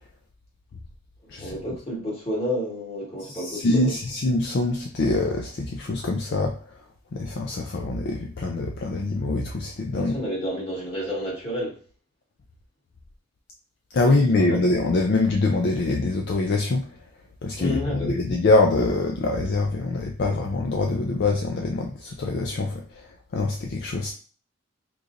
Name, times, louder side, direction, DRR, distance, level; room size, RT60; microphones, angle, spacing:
voice 1, 1.2-4.0 9.9-11.8 14.0-14.6 17.6-18.2, left 1 dB, 30° left, -5 dB, 1.5 m, -30 dB
voice 2, 3.3-6.8 7.1-10.2 13.9-16.9 17.4-24.1, left 2 dB, 55° left, 2 dB, 0.4 m, -24 dB
3.8 x 3.0 x 2.5 m, 0.40 s
head